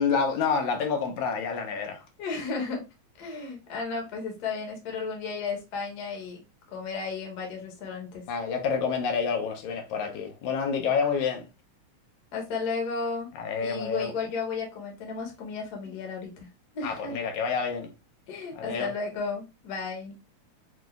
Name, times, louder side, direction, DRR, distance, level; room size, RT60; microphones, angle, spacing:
voice 1, 0.0-2.0 8.3-11.5 13.4-14.1 16.8-17.9 18.6-18.9, left 5 dB, 80° left, 2.1 m, -28 dB
voice 2, 2.2-2.8 3.2-6.4 6.7-8.2 12.3-13.3 13.6-16.3 16.7-17.2 18.3-20.2, left 4 dB, 50° left, 1.2 m, -33 dB
6.1 x 2.5 x 2.2 m
omnidirectional pair, 3.4 m